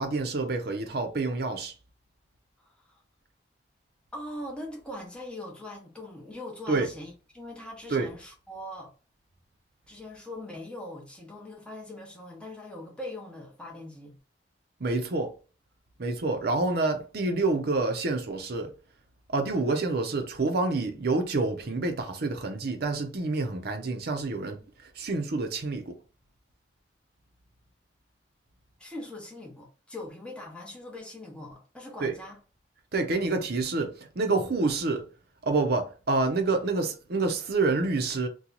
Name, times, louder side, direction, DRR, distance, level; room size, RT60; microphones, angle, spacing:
voice 1, 0.0-1.7 6.7-6.9 7.9-8.1 14.8-15.3 16.0-18.7 19.3-26.0 32.0-32.1 32.9-35.0 35.4-38.3, right 3 dB, 60° right, 0.7 m, -28 dB
voice 2, 2.6-3.0 4.1-8.9 9.9-14.2 28.8-32.4, left 1 dB, 5° left, 0.9 m, -41 dB
2.9 x 2.3 x 3.8 m
head